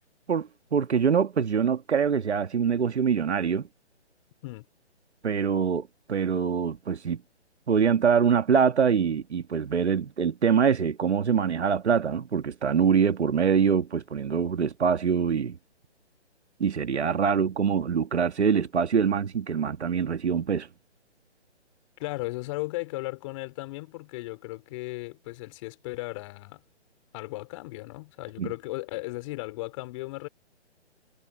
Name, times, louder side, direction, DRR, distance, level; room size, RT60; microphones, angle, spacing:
voice 1, 0.3-3.7 5.2-7.2 7.7-15.6 16.6-20.7 28.4-28.5, right 7 dB, 70° right, 1.7 m, -24 dB
voice 2, 22.0-26.6 27.1-30.3, left 21 dB, 25° left, 3.3 m, -36 dB
hypercardioid pair, 150°, 35 cm